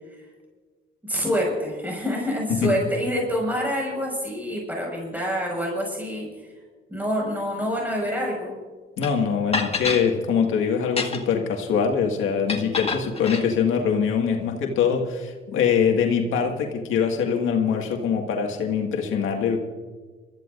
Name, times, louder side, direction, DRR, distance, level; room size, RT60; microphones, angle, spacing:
voice 1, 1.1-6.3 6.9-8.6, equal, 10° right, -2 dB, 5.7 m, -26 dB
voice 2, 9.0-19.6, left 6 dB, 85° left, 1 dB, 2.0 m, -23 dB
sound 1, 9.0-9.1 9.5-10.1 10.8-11.4 12.5-13.5, left 4 dB, 30° left, 1.8 m, -28 dB
26.5 x 14.0 x 2.6 m, 1.4 s
cardioid pair, 90°, 20 cm